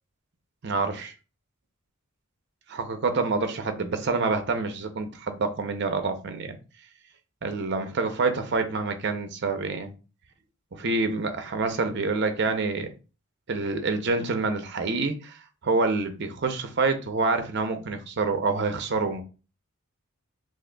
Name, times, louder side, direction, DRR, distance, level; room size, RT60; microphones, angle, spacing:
voice 1, 0.6-1.1 2.7-6.6 7.4-9.9 10.7-12.9 13.5-19.2, right 3 dB, 50° right, 0.6 m, -27 dB
6.2 x 2.5 x 2.2 m
head